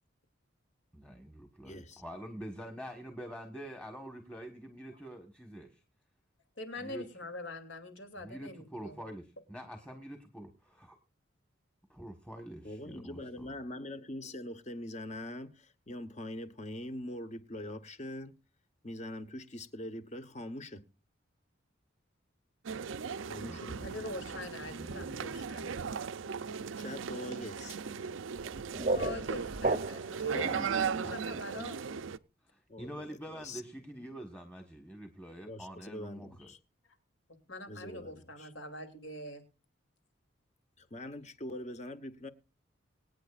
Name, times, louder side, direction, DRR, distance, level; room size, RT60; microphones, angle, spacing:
voice 1, 0.9-5.8 6.8-7.0 8.2-11.0 11.9-13.6 23.3-25.7 30.2-31.5 32.4-36.5, equal, 5° left, 1.4 m, -46 dB
voice 2, 1.6-2.0 12.6-18.3 18.8-20.8 23.3-24.0 26.8-27.8 30.5-30.6 31.0-31.2 32.7-33.6 35.4-36.6 37.7-38.5 40.8-42.3, left 1 dB, 35° left, 1.1 m, -43 dB
voice 3, 6.6-9.0 23.8-25.8 28.8-31.8 37.5-39.4, left 2 dB, 75° left, 2.9 m, -44 dB
sound 1, 22.7-32.2, right 6 dB, 80° right, 0.5 m, -37 dB
sound 2, 28.4-30.3, right 3 dB, 40° right, 0.7 m, -33 dB
25.0 x 9.2 x 2.5 m
head